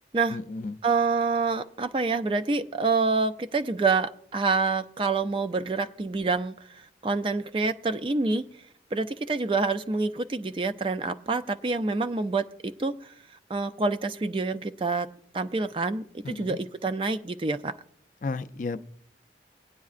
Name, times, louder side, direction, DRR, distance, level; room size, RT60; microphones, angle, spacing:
voice 1, 0.3-0.8 16.2-16.6 18.2-18.8, left 3 dB, 45° left, 12 dB, 0.3 m, -33 dB
voice 2, 0.8-8.5 8.9-13.1 13.5-17.7, right 4 dB, 30° right, 10 dB, 0.3 m, -27 dB
19.5 x 9.3 x 2.4 m, 0.66 s
head